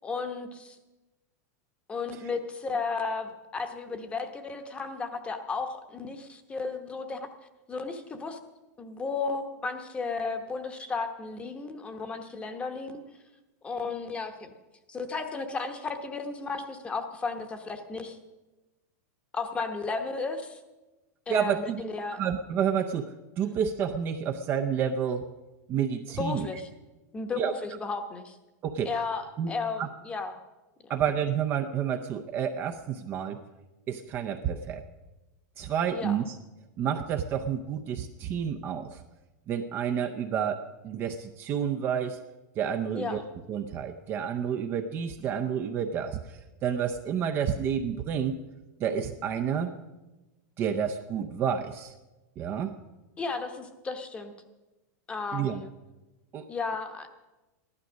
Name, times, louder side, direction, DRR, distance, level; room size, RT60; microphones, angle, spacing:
voice 1, 0.0-0.8 1.9-7.2 7.7-8.4 8.8-13.0 13.6-14.5 14.9-18.2 19.3-20.6 21.3-22.2 26.2-26.7 27.1-28.4 28.8-30.4 30.8-31.0 35.9-36.2 42.9-43.2 53.2-54.3 55.1-55.7 56.5-57.1, left 4 dB, 10° left, 8 dB, 1.0 m, -34 dB
voice 2, 21.3-25.2 25.7-26.5 27.4-27.5 28.6-28.9 29.4-29.5 29.8-29.9 30.9-33.4 33.9-34.8 35.6-36.4 36.8-39.0 39.5-42.2 42.6-43.2 43.5-48.4 48.8-49.7 50.6-51.9 52.4-52.7 55.3-55.6 56.3-56.5, right 8 dB, 25° right, 6 dB, 0.6 m, -30 dB
14.5 x 12.0 x 6.3 m, 1.1 s
supercardioid pair, 165°, 9 cm